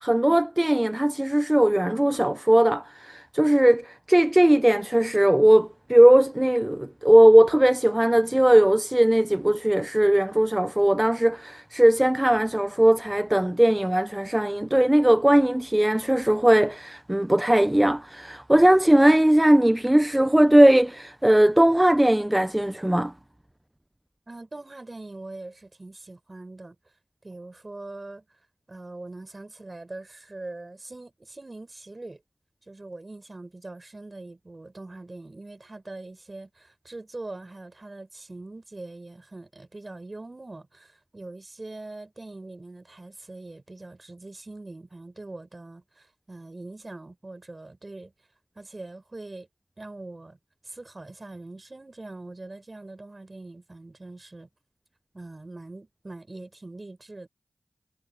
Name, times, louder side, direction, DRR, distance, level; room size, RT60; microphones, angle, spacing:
voice 1, 0.0-23.1, right 1 dB, 15° right, 0.6 m, -19 dB
voice 2, 24.3-26.7 27.2-28.2 28.7-32.2 32.7-48.1 48.5-49.5 49.8-50.4 50.6-54.5 55.1-57.3, right 2 dB, 40° right, 6.9 m, -42 dB
cardioid pair, 40°, 0 cm